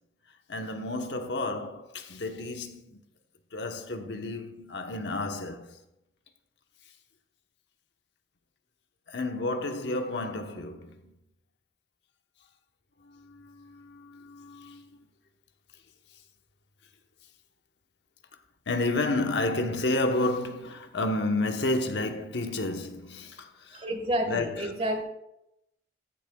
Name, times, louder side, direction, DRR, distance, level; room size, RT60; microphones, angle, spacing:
voice 1, 0.5-3.0 3.5-5.8 9.1-11.1 13.0-15.0 18.7-23.8 24.3-24.7, left 2 dB, 85° left, 1.0 m, -31 dB
voice 2, 23.7-25.1, right 1 dB, 35° right, 1.5 m, -30 dB
15.0 x 10.5 x 2.3 m
head